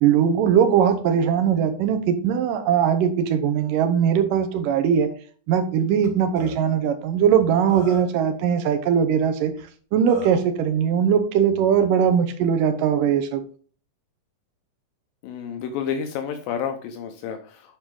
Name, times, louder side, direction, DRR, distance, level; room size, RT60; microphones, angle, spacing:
voice 1, 0.0-5.1 5.5-9.5 9.9-13.4, right 8 dB, 75° right, 8 dB, 2.5 m, -20 dB
Burping eructation, 6.0-6.1 6.4-6.6 7.3-7.4 7.7-8.2 9.6-9.7 10.1-10.4, left 3 dB, 40° left, 3.2 m, -37 dB
voice 2, 15.2-17.8, left 7 dB, 80° left, 5 dB, 2.5 m, -30 dB
10.0 x 4.8 x 3.8 m, 0.43 s
omnidirectional pair, 4.1 m